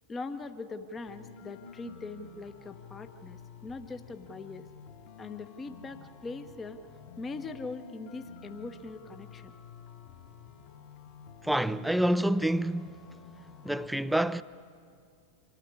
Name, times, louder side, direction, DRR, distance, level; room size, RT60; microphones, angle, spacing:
voice 1, 0.1-4.7 5.2-6.8 7.2-9.5, left 3 dB, 20° left, 1.0 m, -41 dB
sound 1, 1.1-13.9, left 5 dB, 50° left, 2.4 m, -50 dB
voice 2, 11.4-12.9 13.6-14.4, right 1 dB, 5° right, 0.5 m, -27 dB
26.0 x 13.5 x 9.8 m
figure-of-eight pair, 90°, 0 cm